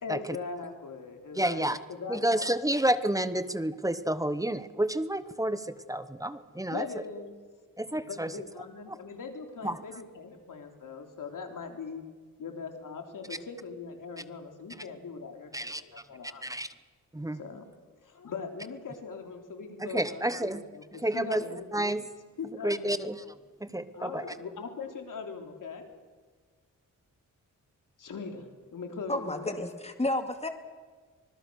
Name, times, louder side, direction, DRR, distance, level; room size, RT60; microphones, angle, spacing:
voice 1, 0.0-2.5 6.7-7.4 8.0-12.0 12.4-16.4 17.3-17.7 18.0-21.6 22.4-23.0 23.9-25.9 28.0-29.6, left 5 dB, 70° left, 4 dB, 3.6 m, -41 dB
voice 2, 1.3-1.8 2.1-6.9 7.8-8.3 8.9-9.0 9.6-9.8 15.5-15.8 16.4-16.7 17.1-17.4 19.8-20.6 21.0-21.4 21.7-22.0 22.6-23.2 23.6-24.2, right 1 dB, 10° right, 13 dB, 1.0 m, -30 dB
voice 3, 29.1-30.5, left 1 dB, 20° left, 6 dB, 2.5 m, -31 dB
25.5 x 20.5 x 6.4 m, 1.5 s
cardioid pair, 95°, 33 cm